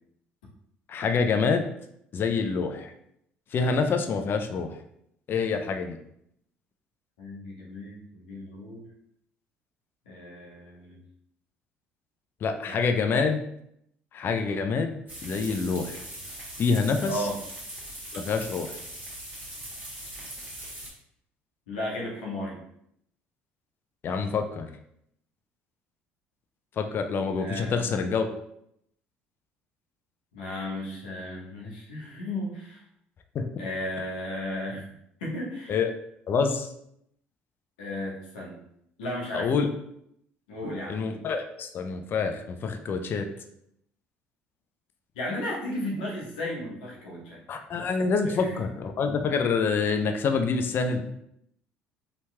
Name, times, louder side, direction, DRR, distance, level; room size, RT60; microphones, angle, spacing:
voice 1, 0.9-1.6 2.1-2.9 3.5-4.8 5.3-6.0 12.4-13.4 14.1-14.9 15.2-16.0 16.6-17.3 18.1-18.8 24.0-24.7 26.8-28.3 33.3-33.5 35.7-35.9 36.3-36.7 39.3-39.7 40.9-43.3 47.5-51.0, left 5 dB, 45° left, 6 dB, 0.4 m, -26 dB
voice 2, 7.2-8.8 10.1-11.0 12.6-12.9 17.1-17.4 21.7-22.6 27.4-28.1 30.3-32.8 33.6-34.9 35.2-35.8 37.8-38.6 39.0-39.5 40.5-41.0 45.2-47.4 47.8-47.9 48.2-48.6, left 1 dB, 85° left, -3 dB, 0.8 m, -35 dB
sound 1, 15.1-20.9, right 1 dB, 35° right, 1.3 m, -40 dB
2.9 x 2.8 x 2.2 m, 0.73 s
hypercardioid pair, 65°, 5 cm